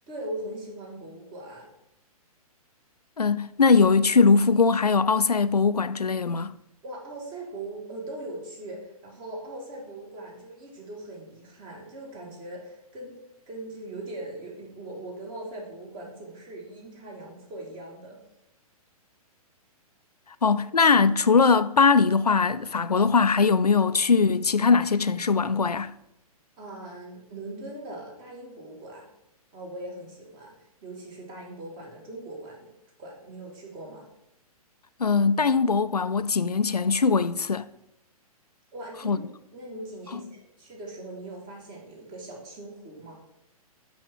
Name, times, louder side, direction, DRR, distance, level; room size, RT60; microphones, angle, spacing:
voice 1, 0.1-1.7 6.8-13.2 13.5-18.2 20.5-20.6 26.6-29.1 29.5-30.5 30.8-32.7 33.0-34.1 38.7-39.2 39.5-43.2, right 1 dB, 25° right, 2.3 m, -40 dB
voice 2, 3.2-6.5 20.4-25.9 35.0-37.7 39.0-39.2, left 5 dB, 85° left, 0.4 m, -21 dB
6.1 x 5.7 x 6.2 m
figure-of-eight pair, 115°, 19 cm